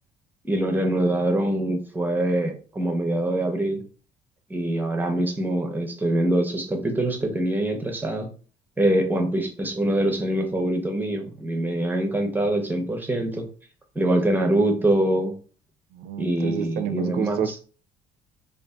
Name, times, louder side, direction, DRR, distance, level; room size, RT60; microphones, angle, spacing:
voice 1, 0.4-3.8 4.5-8.3 8.8-13.5 14.0-15.3 16.2-17.4, right 1 dB, 10° right, 4 dB, 0.6 m, -24 dB
voice 2, 15.9-17.6, right 8 dB, 70° right, 8 dB, 0.4 m, -29 dB
2.6 x 2.4 x 2.2 m, 0.39 s
cardioid pair, 110°, 17 cm